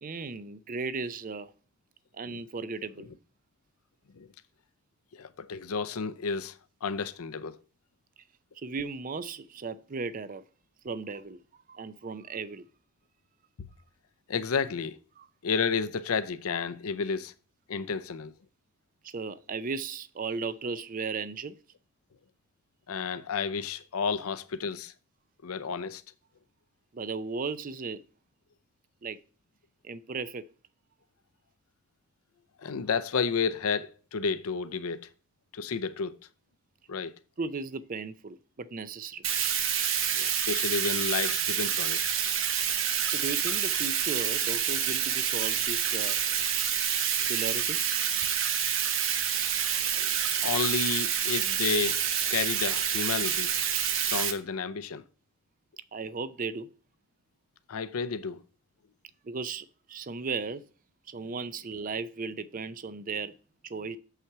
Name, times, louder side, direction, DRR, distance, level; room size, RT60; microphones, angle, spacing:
voice 1, 0.0-1.5 2.1-3.1 8.5-10.4 10.8-11.4 11.7-12.7 15.2-15.3 19.0-21.6 26.9-28.0 29.0-29.2 29.8-30.4 37.4-39.2 43.1-46.2 47.3-47.8 55.9-56.7 59.2-60.6 61.1-63.3 63.6-64.0, right 4 dB, 40° right, 0.5 m, -36 dB
voice 2, 5.1-6.5 6.8-7.6 14.3-15.0 15.4-17.3 17.7-18.3 22.9-24.9 25.4-26.0 32.6-35.1 35.5-36.1 36.9-37.1 40.1-42.0 50.0-50.1 50.4-53.6 53.9-55.0 57.7-58.4, left 5 dB, 80° left, 0.6 m, -31 dB
Bathtub (filling or washing), 39.2-54.3, right 8 dB, 60° right, 1.1 m, -28 dB
7.3 x 5.7 x 4.6 m
head